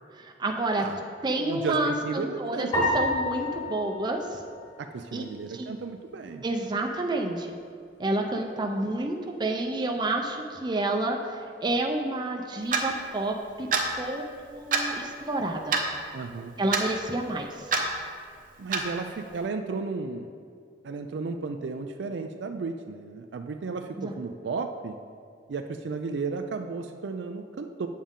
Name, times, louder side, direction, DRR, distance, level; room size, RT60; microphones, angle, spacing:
voice 1, 0.1-0.9 1.2-2.7 2.9-4.4 5.1-5.2 5.5-5.8 6.4-7.5 8.0-13.7 14.0-15.8 16.6-17.7 24.0-24.1, right 2 dB, 25° right, 2 dB, 0.5 m, -29 dB
voice 2, 1.3-2.9 4.8-6.4 16.1-16.6 18.6-20.3 20.8-25.0 25.5-27.9, right 4 dB, 75° right, 6 dB, 0.4 m, -34 dB
sound 1, 2.7-5.2, left 1 dB, 30° left, 1.7 m, -30 dB
Clock, 12.7-12.9 13.7-13.9 14.7-14.9 15.7-15.9 16.7-16.8 17.7-17.9 18.7-18.9, right 4 dB, 50° right, 0.8 m, -25 dB
8.4 x 7.2 x 3.7 m, 2.2 s
head